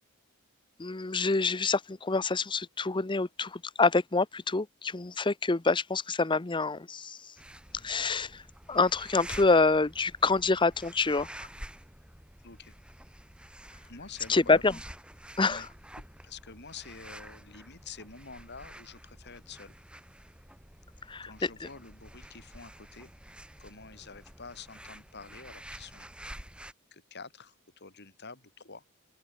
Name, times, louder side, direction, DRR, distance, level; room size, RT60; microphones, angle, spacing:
voice 1, 0.8-7.2 7.8-8.4 8.7-11.3 14.3-14.7 15.4-15.6 21.1-21.5, left 3 dB, 20° left, 0.7 m, -26 dB
sound 1, 7.4-26.7, right 1 dB, 5° right, 2.1 m, -49 dB
voice 2, 12.4-12.7 13.9-14.6 15.5-15.7 16.0-19.7 21.2-23.1 23.6-26.2 26.9-28.9, left 5 dB, 50° left, 5.9 m, -48 dB
open air
head